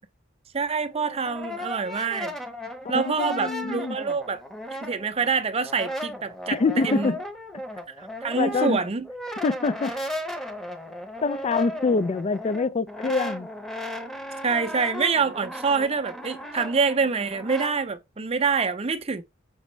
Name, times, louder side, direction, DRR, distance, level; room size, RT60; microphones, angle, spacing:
voice 1, 0.5-2.3 2.9-4.4 4.8-6.6 6.8-7.1 8.0-9.1 14.4-19.2, right 5 dB, 30° right, 0.6 m, -26 dB
Brass instrument, 0.9-5.3 5.6-17.7, left 1 dB, ahead, 0.8 m, -36 dB
voice 2, 2.8-4.0 6.5-7.2 8.4-8.8 9.4-9.9 11.2-13.5, left 4 dB, 30° left, 0.3 m, -25 dB
6.1 x 5.0 x 3.2 m
head